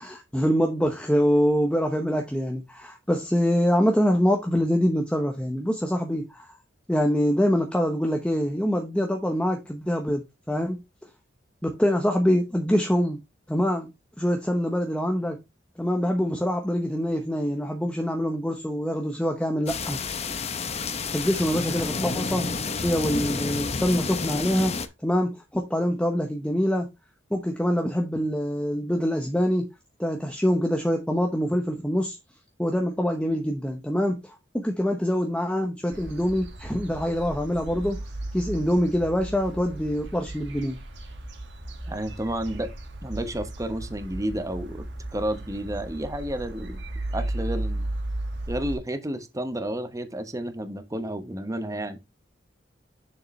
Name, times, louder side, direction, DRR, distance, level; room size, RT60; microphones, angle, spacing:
voice 1, 0.0-6.5 6.9-10.8 11.6-13.2 13.5-13.9 14.2-15.4 15.8-20.0 21.1-22.5 22.8-24.7 25.0-26.9 27.3-29.7 30.0-32.2 32.6-38.0 38.3-40.8, equal, 5° left, 0.9 m, -25 dB
sound 1, 19.7-24.9, left 4 dB, 35° left, 0.7 m, -30 dB
sound 2, 35.9-48.8, right 1 dB, 65° right, 1.8 m, -35 dB
voice 2, 41.8-42.7 43.0-44.8 45.1-46.8 47.1-47.8 48.5-52.0, right 1 dB, 20° right, 1.0 m, -31 dB
7.0 x 6.7 x 3.2 m
head